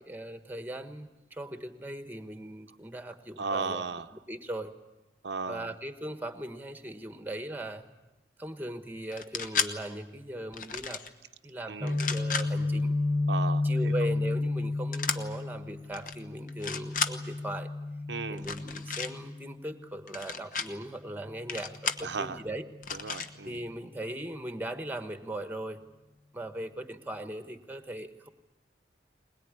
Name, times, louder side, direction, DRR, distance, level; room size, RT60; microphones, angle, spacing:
voice 1, 0.0-3.8 4.3-4.7 5.5-7.9 8.4-11.0 11.4-12.9 13.6-17.7 18.3-22.6 23.4-25.8 26.3-28.3, right 1 dB, 10° right, 8 dB, 1.3 m, -39 dB
voice 2, 3.4-4.1 5.2-5.7 11.7-12.0 13.3-13.9 18.1-18.4 22.0-22.4 22.9-23.6, right 4 dB, 90° right, 8 dB, 0.8 m, -35 dB
sound 1, 9.1-9.7 10.5-11.1 11.9-12.5 14.9-15.2 15.9-16.1 16.5-17.1 18.4-19.1 20.1-20.7 21.5-22.1 22.8-23.3, left 6 dB, 50° left, 1.1 m, -33 dB
Guitar, 11.8-19.7, left 2 dB, 85° left, 3.8 m, -31 dB
21.5 x 21.5 x 9.7 m, 1.0 s
head